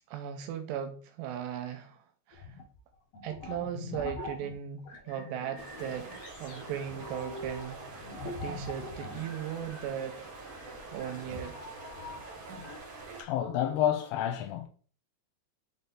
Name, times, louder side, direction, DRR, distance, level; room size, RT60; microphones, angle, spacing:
voice 1, 0.1-2.6 3.2-10.3 10.9-11.6, right 9 dB, 85° right, 2.6 m, -38 dB
sound 1, 2.3-2.8 3.1-12.8, left 2 dB, 65° left, 1.6 m, -44 dB
sound 2, 5.6-13.2, right 3 dB, 60° right, 1.4 m, -46 dB
voice 2, 13.2-14.7, left 10 dB, 85° left, 2.8 m, -29 dB
6.6 x 4.1 x 3.7 m
omnidirectional pair, 5.1 m